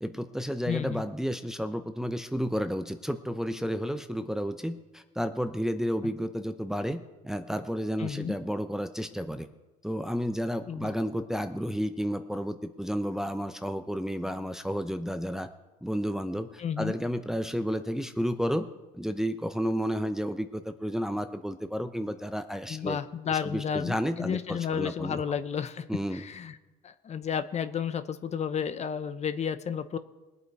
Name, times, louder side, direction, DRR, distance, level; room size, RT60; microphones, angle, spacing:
voice 1, 0.0-9.5 9.8-15.5 15.8-18.7 18.9-23.0 23.3-25.2 25.9-26.2, equal, 5° right, 7 dB, 0.7 m, -31 dB
voice 2, 0.7-1.0 8.0-8.3 10.7-10.9 16.6-16.9 22.7-25.9 26.1-26.6 26.8-30.0, left 7 dB, 40° left, 11 dB, 0.8 m, -32 dB
20.5 x 8.2 x 4.7 m, 1.1 s
cardioid pair, 110°, 17 cm